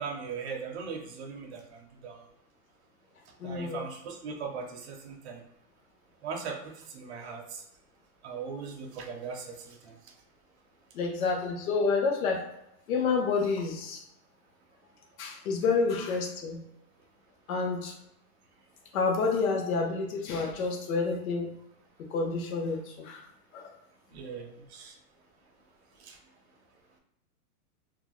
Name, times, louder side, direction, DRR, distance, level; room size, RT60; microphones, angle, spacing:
voice 1, 0.0-2.2 3.4-5.4 6.2-7.6 8.2-9.9 24.1-24.9 26.0-26.2, right 5 dB, 45° right, 3 dB, 0.5 m, -39 dB
voice 2, 3.4-3.8 10.9-12.4 12.9-14.0 15.2-16.6 17.5-17.9 18.9-21.5 22.1-23.2 23.5-23.7, left 4 dB, 60° left, 2 dB, 0.8 m, -29 dB
2.6 x 2.1 x 3.0 m, 0.82 s
supercardioid pair, 175°, 47 cm